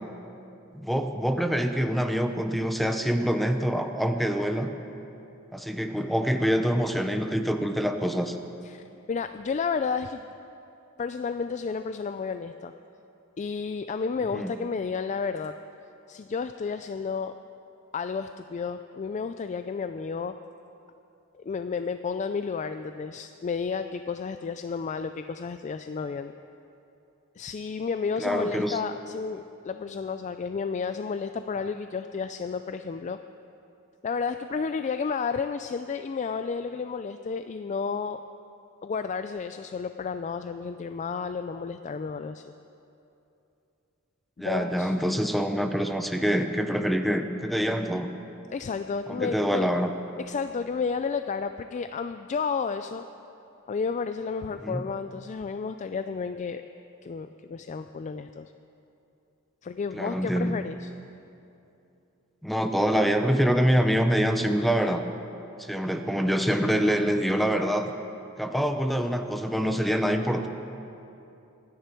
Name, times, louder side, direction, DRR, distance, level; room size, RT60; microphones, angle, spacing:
voice 1, 0.7-4.7 5.5-8.4 14.3-14.5 28.2-28.8 44.4-48.1 49.1-49.9 54.6-54.8 59.9-60.6 62.4-65.0 65.6-67.9 68.4-70.5, equal, ahead, 6 dB, 0.7 m, -25 dB
voice 2, 9.1-10.3 11.0-12.7 13.4-15.5 16.1-17.3 17.9-20.3 21.3-26.3 27.4-33.2 34.0-38.2 38.8-42.5 44.4-44.9 48.5-49.7 50.3-53.0 53.7-56.6 57.0-58.5 59.6-60.9, left 5 dB, 35° left, 9 dB, 0.3 m, -31 dB
25.0 x 10.0 x 4.5 m, 2.8 s
head